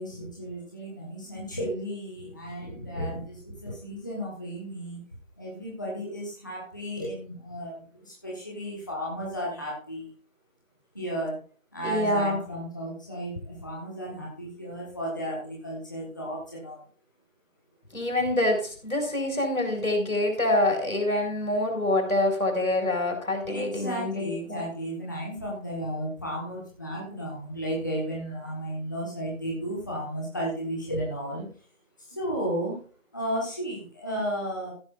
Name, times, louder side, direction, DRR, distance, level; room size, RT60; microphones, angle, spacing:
voice 1, 0.0-5.0 5.4-10.1 10.9-11.4 11.7-16.8 23.5-31.4 32.1-32.8 33.1-34.7, equal, 15° left, -5 dB, 1.3 m, -34 dB
voice 2, 11.8-12.4 17.9-24.7, left 1 dB, 80° left, 4 dB, 5.3 m, -26 dB
15.0 x 10.5 x 2.5 m, 0.41 s
figure-of-eight pair, 165°, 41 cm